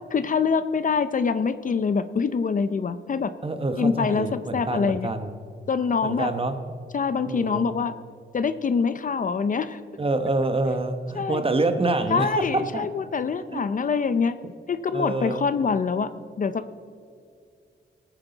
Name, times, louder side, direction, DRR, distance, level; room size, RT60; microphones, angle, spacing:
voice 1, 0.1-3.3 3.8-5.1 5.7-6.3 6.9-7.9 8.3-9.8 11.2-11.4 12.1-14.4 14.7-16.1 16.4-16.8, left 5 dB, 45° left, 12 dB, 0.6 m, -25 dB
voice 2, 3.4-5.4 6.0-6.6 7.3-7.8 10.0-12.9 13.5-13.6 14.9-15.5, right 2 dB, 30° right, 8 dB, 1.0 m, -26 dB
20.0 x 9.3 x 4.0 m, 2.3 s
wide cardioid pair, 100°, 19 cm